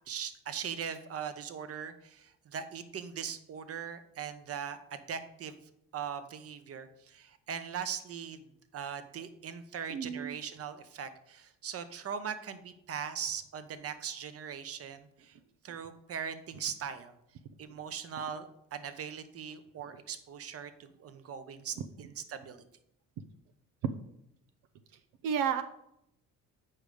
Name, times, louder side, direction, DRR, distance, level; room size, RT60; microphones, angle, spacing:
voice 1, 0.1-8.5 8.7-15.4 15.6-17.2 17.6-22.6, right 7 dB, 45° right, 11 dB, 0.9 m, -40 dB
voice 2, 9.9-10.4 25.2-25.6, right 7 dB, 80° right, 8 dB, 0.7 m, -31 dB
8.8 x 5.1 x 4.9 m, 0.77 s
cardioid pair, 105°, 33 cm